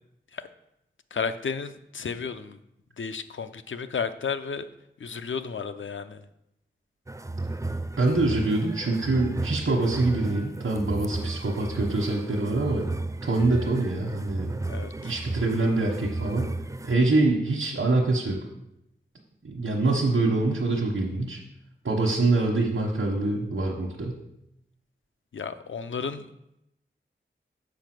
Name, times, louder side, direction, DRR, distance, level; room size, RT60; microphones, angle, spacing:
voice 1, 1.1-2.6 3.0-4.6 5.0-6.2 14.6-15.2 25.3-26.3, left 6 dB, 75° left, 10 dB, 0.6 m, -33 dB
sound 1, 7.1-17.0, right 2 dB, 15° right, 0.4 m, -34 dB
voice 2, 8.0-12.9 13.2-14.6 15.0-16.6 16.8-18.4 19.4-21.4 21.8-24.2, right 2 dB, 75° right, -2 dB, 1.2 m, -25 dB
7.0 x 4.8 x 6.1 m, 0.83 s
wide cardioid pair, 60°, 20 cm